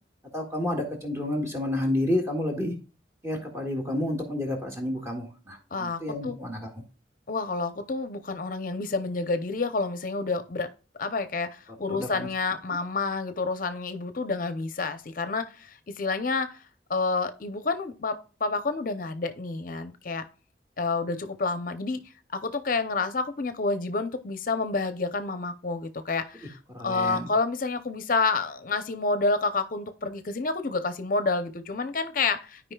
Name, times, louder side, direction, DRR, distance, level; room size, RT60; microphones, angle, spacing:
voice 1, 0.3-2.7 3.2-6.7 11.9-12.3 26.7-27.3, left 1 dB, 15° right, 1 dB, 1.7 m, -30 dB
voice 2, 5.7-6.4 7.3-10.7 11.0-16.6 16.9-20.3 20.8-22.0 22.3-26.6 26.8-32.7, left 3 dB, 50° left, 10 dB, 0.6 m, -29 dB
13.0 x 5.0 x 2.3 m, 0.36 s
head